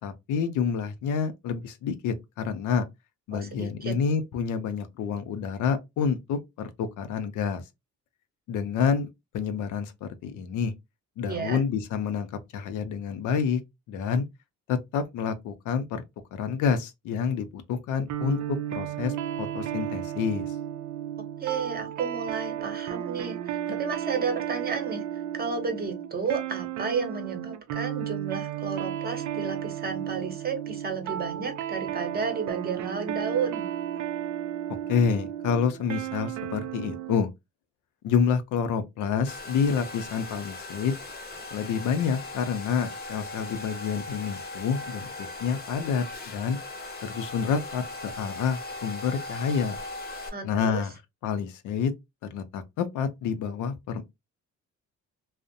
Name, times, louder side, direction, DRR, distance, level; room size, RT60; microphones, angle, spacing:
voice 1, 0.0-2.8 3.3-7.6 8.5-9.1 9.3-10.7 11.2-13.6 13.9-14.3 14.7-16.0 16.3-20.5 23.7-23.8 34.9-37.3 38.0-41.0 41.5-46.6 47.0-47.8 48.2-49.8 50.4-50.9 51.2-51.9 52.3-54.0, left 6 dB, 75° left, 0.5 m, -28 dB
voice 2, 3.3-3.9 11.2-11.6 21.4-33.7 50.3-50.8, right 5 dB, 30° right, 0.7 m, -32 dB
sound 1, 18.1-37.2, right 11 dB, 70° right, 0.4 m, -33 dB
Domestic sounds home sounds, 39.3-50.3, left 2 dB, 30° left, 0.7 m, -39 dB
2.5 x 2.0 x 2.5 m
cardioid pair, 100°, 31 cm